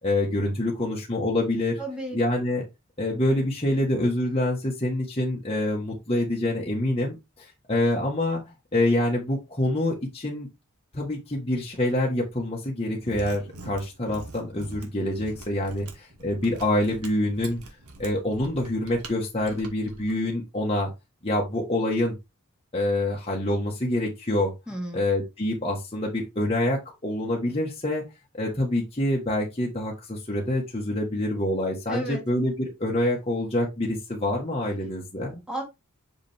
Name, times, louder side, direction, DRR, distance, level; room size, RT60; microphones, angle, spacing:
voice 1, 0.0-1.8 2.1-2.6 3.0-8.4 8.7-10.5 10.9-17.6 18.0-20.9 21.2-22.1 22.7-24.5 24.9-28.0 28.3-35.4, left 1 dB, 25° left, -3 dB, 1.6 m, -26 dB
voice 2, 1.8-2.2 24.7-25.0 31.9-32.2 35.5-35.6, right 1 dB, 5° right, 0 dB, 2.1 m, -32 dB
Mechanisms, 13.0-20.1, right 2 dB, 90° right, 2.0 m, -44 dB
6.9 x 5.0 x 3.5 m, 0.23 s
head